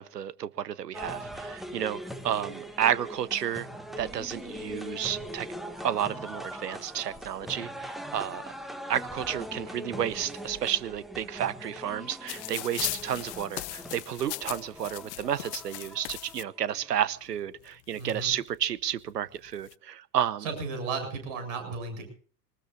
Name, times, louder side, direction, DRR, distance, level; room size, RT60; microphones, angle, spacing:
voice 1, 0.0-3.7 4.0-5.5 5.8-8.4 8.9-20.4, right 10 dB, 75° right, 1.1 m, -31 dB
sound 1, 0.9-17.0, equal, ahead, 1.6 m, -41 dB
sound 2, 12.3-16.4 17.3-17.4 17.7-18.6 19.4-19.7, left 19 dB, 45° left, 0.6 m, -38 dB
voice 2, 17.9-18.3 20.4-22.1, right 4 dB, 50° right, 7.6 m, -34 dB
24.0 x 20.0 x 2.6 m
figure-of-eight pair, 90°, 49 cm